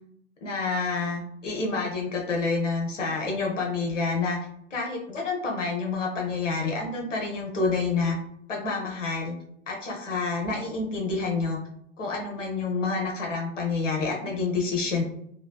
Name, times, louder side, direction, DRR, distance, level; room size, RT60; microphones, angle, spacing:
voice 1, 0.4-4.4 4.7-8.2 8.5-9.4 9.7-11.6 12.0-15.0, left 4 dB, 75° left, -1 dB, 0.8 m, -28 dB
3.3 x 2.5 x 2.3 m, 0.72 s
figure-of-eight pair, 95°, 38 cm